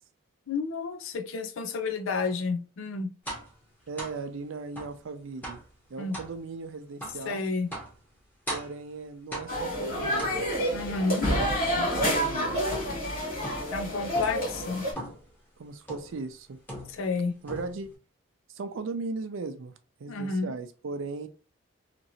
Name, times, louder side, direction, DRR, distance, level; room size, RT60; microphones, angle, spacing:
voice 1, 0.5-3.1 6.0-6.2 7.2-7.7 10.7-11.3 13.7-14.9 16.9-17.3 20.1-20.5, left 4 dB, 85° left, 0.5 m, -30 dB
sound 1, 3.2-3.5 4.0-4.2 4.7-5.0 5.4-5.7 6.1-6.3 7.0-7.2 7.7-8.0 8.5-8.8 9.3-9.7 10.2-10.7 11.2-12.3 12.7-13.1 13.4-13.8 14.1-14.4 14.9-15.3 15.9-16.2 16.7-17.2 17.5-17.9, right 1 dB, 10° left, 0.8 m, -39 dB
voice 2, 3.9-5.6 5.9-7.4 8.5-10.5 11.3-12.8 15.6-16.6 17.4-17.9 18.5-19.7 20.0-21.3, right 4 dB, 80° right, 0.4 m, -37 dB
sound 2, 9.5-14.9, equal, 45° left, 1.6 m, -28 dB
2.9 x 2.7 x 2.7 m
head